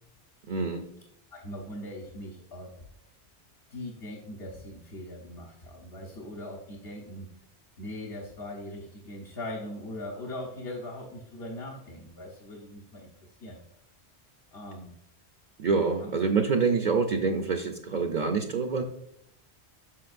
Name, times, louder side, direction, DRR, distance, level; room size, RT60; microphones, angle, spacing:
voice 1, 0.5-0.8 15.6-18.8, right 5 dB, 55° right, 4 dB, 0.6 m, -26 dB
voice 2, 1.3-2.7 3.7-7.3 7.8-13.1 13.4-13.6 14.5-14.9, left 1 dB, 70° left, -2 dB, 1.3 m, -40 dB
7.4 x 6.2 x 2.5 m, 0.73 s
omnidirectional pair, 1.1 m